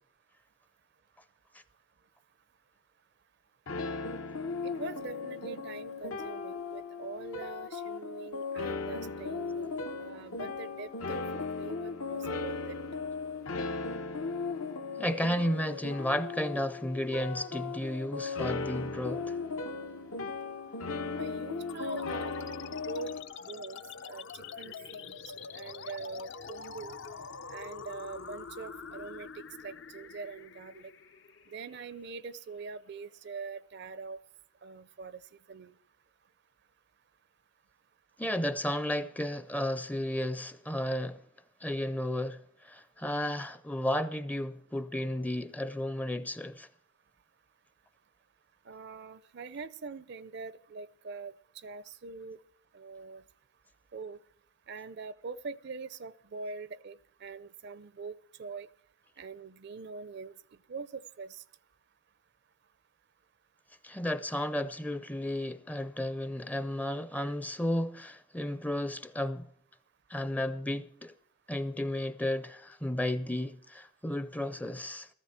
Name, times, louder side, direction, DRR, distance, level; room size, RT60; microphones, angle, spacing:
sound 1, 3.7-23.2, left 4 dB, 80° left, 1.1 m, -37 dB
voice 1, 4.6-12.7 21.1-22.3 22.9-23.1 23.4-23.8 24.1-25.2 25.5-27.0 27.5-29.3 29.6-30.9 31.5-34.2 34.6-35.2 35.5-35.7 48.7-51.3 51.6-52.4 52.7-53.2 53.9-54.2 54.7-57.0 57.2-58.1 58.4-58.7 59.2-60.3 60.7-61.4, right 4 dB, 50° right, 0.5 m, -43 dB
voice 2, 15.0-19.4 38.2-41.2 41.6-46.7 63.8-69.5 70.1-71.1 71.5-75.1, left 1 dB, 5° left, 0.5 m, -33 dB
sound 2, 21.7-32.6, left 5 dB, 55° left, 0.6 m, -45 dB
16.0 x 14.5 x 4.4 m
head